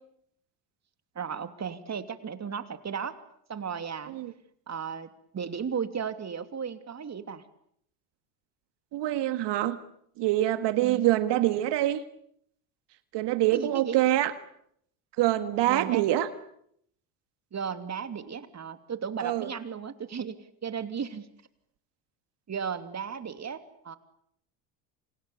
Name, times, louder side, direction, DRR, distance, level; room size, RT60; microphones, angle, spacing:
voice 1, 1.1-3.2 3.5-4.1 4.7-7.4 10.8-11.1 13.5-14.0 15.7-16.1 17.5-21.3 22.5-24.0, right 7 dB, 35° right, 10 dB, 3.0 m, -35 dB
voice 2, 8.9-9.8 10.2-12.0 13.1-14.3 15.2-16.3 19.2-19.5, right 14 dB, 60° right, 11 dB, 1.9 m, -25 dB
30.0 x 28.0 x 7.1 m, 0.71 s
hypercardioid pair, 75°, 48 cm